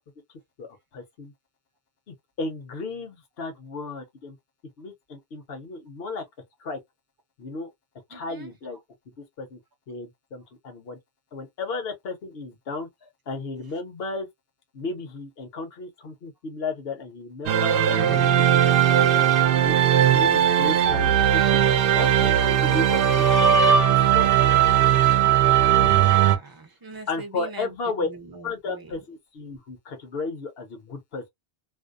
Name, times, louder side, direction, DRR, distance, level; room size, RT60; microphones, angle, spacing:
voice 1, 0.6-1.3 2.1-4.4 4.8-6.2 6.6-6.8 7.4-7.7 8.1-8.8 9.2-9.6 9.9-11.0 11.3-12.9 13.3-14.3 14.7-18.8 19.0-21.6 21.9-24.3 27.1-28.1 28.4-31.3, left 3 dB, 70° left, 1.1 m, -34 dB
voice 2, 8.1-8.5 25.7-27.7 28.0-29.0, right 3 dB, 25° right, 0.6 m, -42 dB
sound 1, 17.5-26.4, right 9 dB, 65° right, 0.7 m, -18 dB
2.6 x 2.0 x 2.4 m
omnidirectional pair, 1.1 m